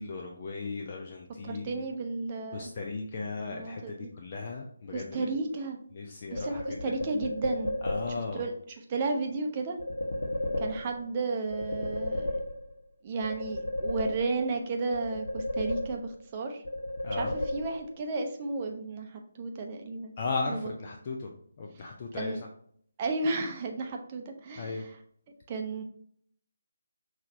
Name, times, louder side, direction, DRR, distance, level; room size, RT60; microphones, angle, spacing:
voice 1, 0.0-1.8 2.5-5.3 5.9-7.0 7.8-8.4 17.0-17.3 20.2-22.5 24.6-24.9, left 3 dB, 35° left, 1 dB, 0.5 m, -36 dB
voice 2, 1.4-2.7 3.4-4.1 4.9-5.8 6.3-7.8 8.3-8.5 8.9-9.8 10.6-12.4 13.0-16.6 17.2-20.1 20.5-20.6 22.1-22.4 23.0-24.8 25.5-25.8, right 3 dB, 25° right, 3 dB, 0.6 m, -33 dB
sound 1, 6.4-8.3 9.8-11.2 11.5-12.9 13.2-14.6 14.9-16.3 16.6-18.0, left 1 dB, 70° left, 1.1 m, -33 dB
5.8 x 3.2 x 2.7 m, 0.63 s
figure-of-eight pair, 150°, 0 cm